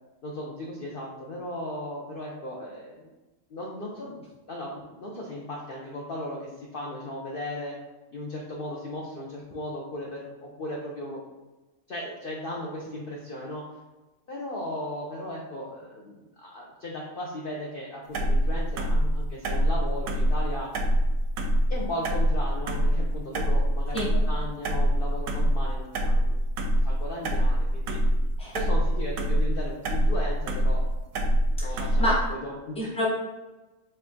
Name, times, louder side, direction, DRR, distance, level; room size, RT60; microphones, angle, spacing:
voice 1, 0.2-3.1 3.5-4.1 4.5-7.8 8.1-11.2 11.9-13.7 14.3-20.7 21.7-28.0 28.5-30.9 31.6-32.9, left 1 dB, 55° left, -3 dB, 0.7 m, -36 dB
sound 1, 18.1-32.3, equal, 85° right, 1.1 m, -25 dB
voice 2, 31.7-32.2 32.8-33.0, equal, 5° left, -5 dB, 0.8 m, -28 dB
4.4 x 2.6 x 3.5 m, 1.1 s
omnidirectional pair, 1.4 m